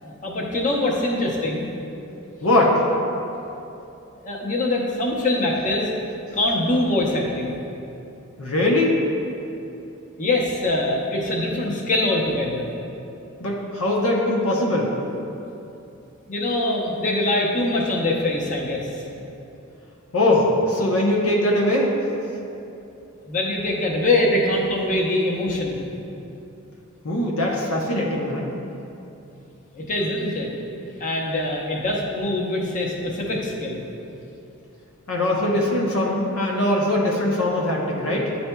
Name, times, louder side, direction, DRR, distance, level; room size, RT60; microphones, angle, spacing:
voice 1, 0.0-1.7 4.2-5.9 6.3-7.6 10.2-12.7 16.3-19.0 23.2-25.8 29.7-30.5 31.0-33.8, left 1 dB, 35° left, -2 dB, 0.7 m, -23 dB
voice 2, 2.4-2.7 8.4-9.0 13.4-14.9 20.1-21.9 27.0-28.5 35.1-38.3, left 1 dB, 80° left, -2 dB, 0.7 m, -21 dB
10.0 x 4.2 x 2.2 m, 2.9 s
head